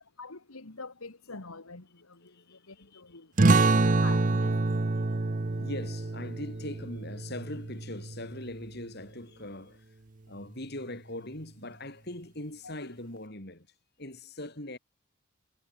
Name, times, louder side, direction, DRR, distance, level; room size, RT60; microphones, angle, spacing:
voice 1, 0.2-3.3 4.0-4.6 12.6-12.9, left 3 dB, 85° left, 2.2 m, -45 dB
voice 2, 2.2-3.2 5.2-5.3 5.6-9.9 10.3-13.7 14.0-14.8, left 1 dB, 50° left, 4.9 m, -41 dB
sound 1, 3.4-8.6, right 3 dB, 35° right, 0.7 m, -26 dB
head